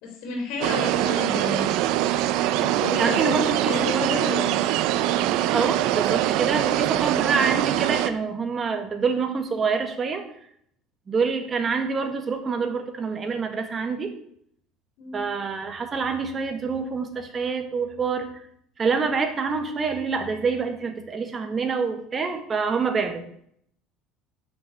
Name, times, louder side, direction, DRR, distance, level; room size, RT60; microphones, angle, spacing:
voice 1, 0.0-1.7 2.5-4.5 15.0-15.2, left 3 dB, 60° left, 2 dB, 3.4 m, -31 dB
sound 1, 0.6-8.1, right 13 dB, 60° right, 0.8 m, -23 dB
voice 2, 3.0-4.1 5.5-10.3 11.1-14.1 15.1-18.3 18.8-23.2, right 5 dB, 20° right, 6 dB, 1.7 m, -26 dB
11.5 x 6.5 x 8.3 m, 0.67 s
cardioid pair, 165°, 0 cm